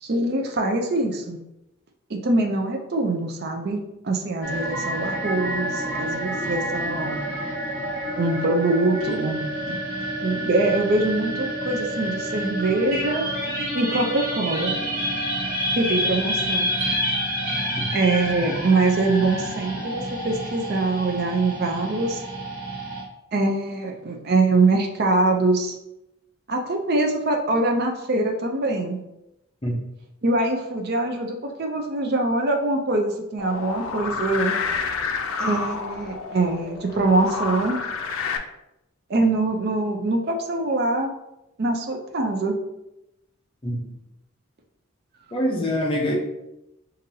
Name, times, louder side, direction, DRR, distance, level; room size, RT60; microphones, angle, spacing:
voice 1, 0.0-1.4 2.1-7.2 8.1-9.8 10.2-13.3 13.7-14.7 15.7-16.7 17.9-22.2 23.3-25.7 26.5-29.0 30.2-34.6 35.4-37.8 39.1-41.1 41.6-42.6, right 2 dB, 50° right, 3 dB, 0.5 m, -23 dB
sound 1, 4.4-23.0, equal, 85° right, 1.2 m, -28 dB
sound 2, 33.4-38.4, left 5 dB, 85° left, 0.4 m, -29 dB
voice 2, 45.3-46.2, equal, 25° left, -1 dB, 0.7 m, -24 dB
5.2 x 2.6 x 2.7 m, 0.89 s
head